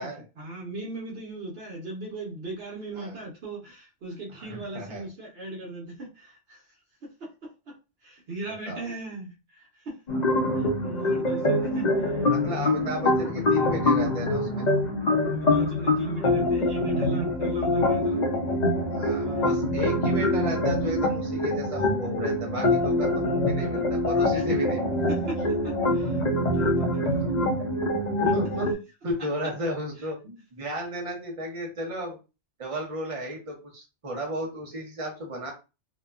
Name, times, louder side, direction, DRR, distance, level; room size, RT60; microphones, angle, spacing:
voice 1, 0.4-6.6 7.2-7.8 8.0-10.2 10.5-12.3 12.6-12.8 15.3-18.2 19.2-19.9 24.3-24.6 25.1-26.2 26.5-27.5, right 2 dB, 70° right, 1.1 m, -38 dB
voice 2, 4.3-5.1 8.7-8.9 12.2-14.7 18.9-25.2 28.2-28.7 29.0-32.2 32.6-35.5, equal, 35° right, 0.9 m, -34 dB
sound 1, 10.1-28.7, left 1 dB, 50° left, 0.7 m, -25 dB
2.8 x 2.1 x 2.3 m
omnidirectional pair, 1.1 m